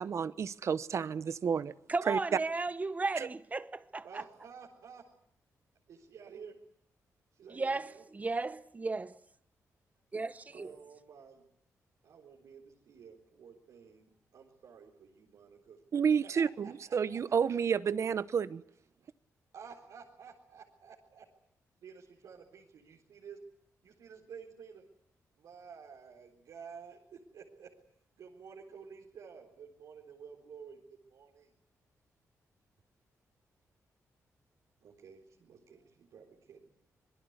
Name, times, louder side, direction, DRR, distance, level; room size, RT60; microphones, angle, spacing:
voice 1, 0.0-2.4 3.1-3.3 15.9-18.6, right 7 dB, 55° right, 1.0 m, -31 dB
voice 2, 1.9-4.2 7.5-9.2 10.1-10.7, right 3 dB, 25° right, 1.0 m, -35 dB
voice 3, 4.0-5.0 5.9-6.6 7.3-8.1 10.5-11.5 12.0-15.8 16.2-17.4 19.5-21.3 21.8-23.4 23.8-24.9 25.4-27.7 28.2-31.5 34.8-36.7, right 6 dB, 85° right, 4.0 m, -52 dB
26.5 x 21.0 x 8.2 m
cardioid pair, 100°, 6 cm